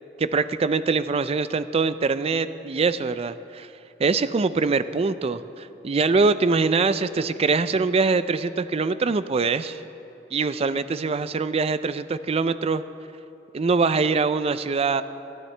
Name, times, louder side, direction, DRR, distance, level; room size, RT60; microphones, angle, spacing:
voice 1, 0.2-3.7 4.0-9.8 10.3-12.8 13.5-15.0, right 4 dB, 35° right, 13 dB, 0.4 m, -23 dB
27.0 x 9.5 x 3.3 m, 2.9 s
head